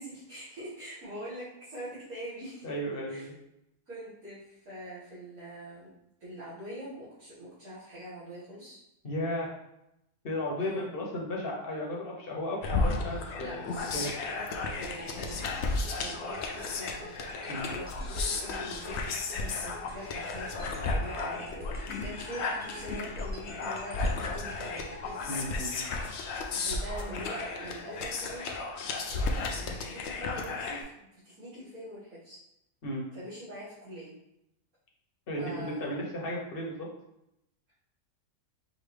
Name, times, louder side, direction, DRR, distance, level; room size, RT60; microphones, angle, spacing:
voice 1, 0.0-2.7 3.1-3.3 3.9-5.9 6.2-8.8 10.6-10.9 13.4-17.1 17.6-25.3 26.5-28.5 29.1-32.4 33.1-34.1 35.4-35.8, equal, 70° right, -14 dB, 2.4 m, -44 dB
voice 2, 2.6-3.3 9.0-9.5 10.2-13.7 13.9-14.1 17.5-17.7 25.3-25.9 32.8-33.0 35.3-36.9, left 1 dB, 45° left, -1 dB, 1.0 m, -34 dB
sound 1, 12.6-30.8, left 3 dB, 60° left, 0.7 m, -34 dB
sound 2, 14.7-26.9, right 1 dB, 10° right, 0.6 m, -48 dB
5.2 x 2.8 x 3.3 m, 0.83 s
omnidirectional pair, 1.6 m